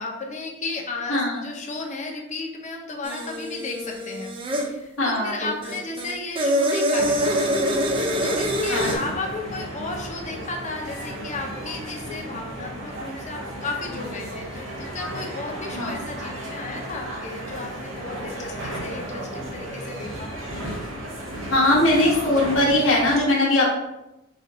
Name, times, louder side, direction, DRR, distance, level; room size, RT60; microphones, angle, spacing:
voice 1, 0.0-20.4, left 3 dB, 35° left, 1 dB, 0.7 m, -34 dB
voice 2, 1.1-1.4 5.0-5.5 8.7-9.0 15.7-16.0 21.5-23.8, left 1 dB, 80° left, -4 dB, 1.0 m, -20 dB
sound 1, 3.0-4.7 5.6-9.0, equal, 25° right, 0.5 m, -24 dB
sound 2, 7.0-23.2, right 1 dB, 75° right, 0.8 m, -34 dB
4.3 x 2.5 x 3.8 m, 0.93 s
head